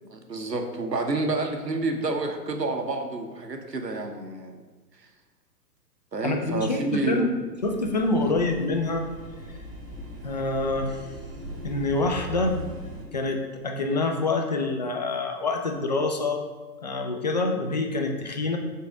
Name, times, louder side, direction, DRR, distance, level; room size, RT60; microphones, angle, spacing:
voice 1, 0.1-4.6 6.1-7.3 8.2-8.3, right 2 dB, 85° right, 4 dB, 1.0 m, -29 dB
voice 2, 6.2-7.3 7.6-9.0 10.2-11.0 11.6-12.6 13.1-16.4 16.8-18.6, left 3 dB, 30° left, 4 dB, 0.4 m, -26 dB
sound 1, 7.6-13.0, right 1 dB, 10° right, 0.9 m, -39 dB
5.6 x 4.0 x 5.0 m, 1.3 s
figure-of-eight pair, 120°, 49 cm